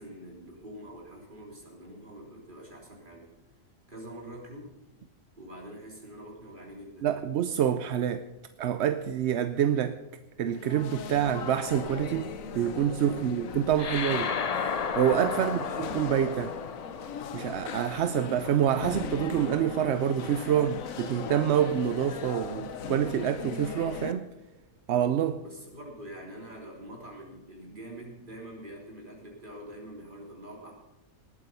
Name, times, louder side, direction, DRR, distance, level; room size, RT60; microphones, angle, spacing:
voice 1, 0.0-3.3 3.9-4.8 5.4-7.2 13.1-13.4 15.3-15.5 25.4-30.7, right 1 dB, 35° right, 3.6 m, -45 dB
voice 2, 7.0-8.2 8.6-10.0 10.4-14.3 15.0-16.6 17.3-24.3 24.9-25.4, right 9 dB, 65° right, 0.8 m, -27 dB
sound 1, 10.5-24.1, left 6 dB, 75° left, 1.3 m, -38 dB
sound 2, 13.8-18.5, left 6 dB, 45° left, 0.5 m, -34 dB
19.0 x 8.6 x 5.4 m
omnidirectional pair, 1.4 m